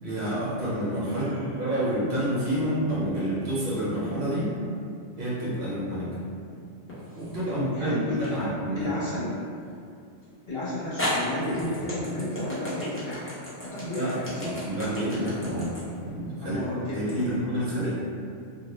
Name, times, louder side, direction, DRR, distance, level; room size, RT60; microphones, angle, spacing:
voice 1, 0.0-1.2 1.6-4.5 5.2-6.1 7.2-8.9 13.9-15.7 16.0-16.6 16.9-17.9, equal, 55° right, -9 dB, 1.0 m, -28 dB
voice 2, 1.1-1.7 7.5-9.3 10.5-13.3 13.6-14.5 16.4-17.4, left 1 dB, 55° left, -8 dB, 0.9 m, -32 dB
sound 1, 6.9-7.5 8.2-8.3 10.2-10.3 11.0-17.2, left 1 dB, 20° left, 0.3 m, -34 dB
2.4 x 2.0 x 3.0 m, 2.4 s
omnidirectional pair, 1.3 m